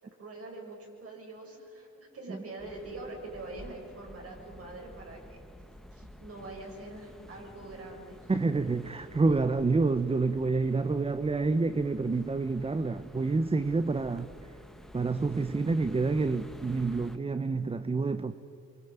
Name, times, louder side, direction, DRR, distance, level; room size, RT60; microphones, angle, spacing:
voice 1, 0.2-5.4 5.9-8.3 8.8-9.0, right 2 dB, 50° right, 1 dB, 7.9 m, -44 dB
sound 1, 2.6-17.2, equal, ahead, 1.5 m, -50 dB
voice 2, 8.3-14.3 14.9-18.3, right 3 dB, 20° right, 11 dB, 0.9 m, -28 dB
26.0 x 24.0 x 9.0 m, 2.7 s
cardioid pair, 90°, 30 cm